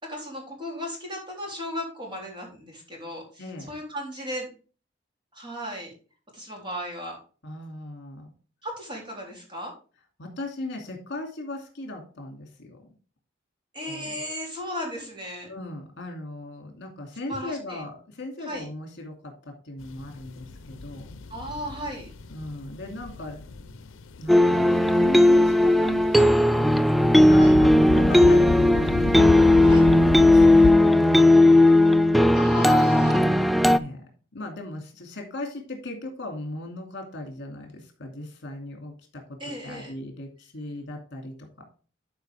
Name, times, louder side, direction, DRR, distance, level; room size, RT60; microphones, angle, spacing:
voice 1, 0.0-4.5 5.3-5.9 6.3-7.2 8.6-9.7 13.7-15.5 17.3-17.8 18.5-18.7 21.3-22.1 27.4-27.6 29.6-29.9 32.3-33.2 39.4-39.9, left 1 dB, 25° right, -1 dB, 3.5 m, -35 dB
voice 2, 3.4-3.7 7.4-8.3 10.2-12.8 13.9-14.2 15.4-21.1 22.3-23.7 24.2-26.8 27.3-29.7 30.3-31.7 33.7-41.6, left 1 dB, 60° left, 3 dB, 2.6 m, -38 dB
sound 1, 19.8-30.7, left 3 dB, 75° left, 0.6 m, -32 dB
sound 2, 24.3-33.8, left 1 dB, ahead, 0.3 m, -17 dB
11.5 x 5.1 x 3.4 m, 0.37 s
head